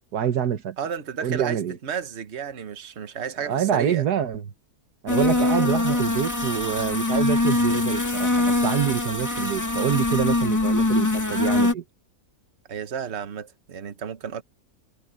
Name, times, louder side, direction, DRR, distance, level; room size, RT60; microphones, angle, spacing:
voice 1, 0.1-0.8 1.2-1.8 3.5-4.4 5.0-11.8, right 9 dB, 85° right, 1.7 m, -26 dB
voice 2, 0.8-4.1 5.4-6.0 12.7-14.4, right 7 dB, 45° right, 1.4 m, -33 dB
sound 1, 5.1-11.7, left 2 dB, 10° left, 1.9 m, -23 dB
omnidirectional pair, 1.7 m